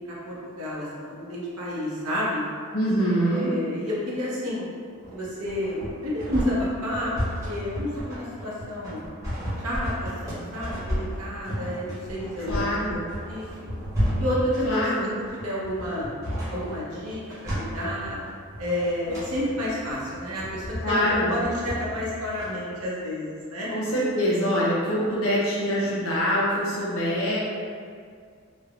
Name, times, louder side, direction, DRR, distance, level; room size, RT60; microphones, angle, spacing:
voice 1, 0.2-2.4 3.1-4.7 5.1-7.1 7.4-9.0 9.6-13.0 13.3-13.5 14.2-14.8 15.3-16.1 16.5-18.2 18.6-23.7, left 1 dB, 80° right, -6 dB, 0.7 m, -30 dB
voice 2, 2.7-3.5 12.5-13.0 14.6-15.1 20.8-21.4 23.7-27.4, equal, 65° left, -7 dB, 0.6 m, -24 dB
sound 1, 5.0-22.5, equal, 15° right, 0.8 m, -32 dB
3.3 x 2.0 x 2.3 m, 2.1 s
head